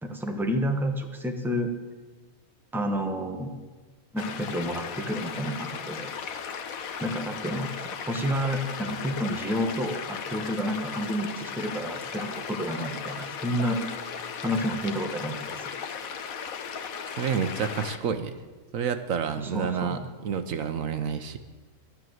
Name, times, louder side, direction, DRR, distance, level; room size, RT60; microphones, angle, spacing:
voice 1, 0.0-1.7 2.7-3.5 4.1-6.1 7.0-13.8 14.4-15.7 19.4-20.0, equal, ahead, 4 dB, 1.1 m, -30 dB
sound 1, 4.2-18.0, left 6 dB, 80° left, 1.3 m, -36 dB
voice 2, 17.1-18.3 18.7-21.4, right 7 dB, 70° right, 10 dB, 1.2 m, -29 dB
12.0 x 10.0 x 7.9 m, 1.3 s
omnidirectional pair, 1.5 m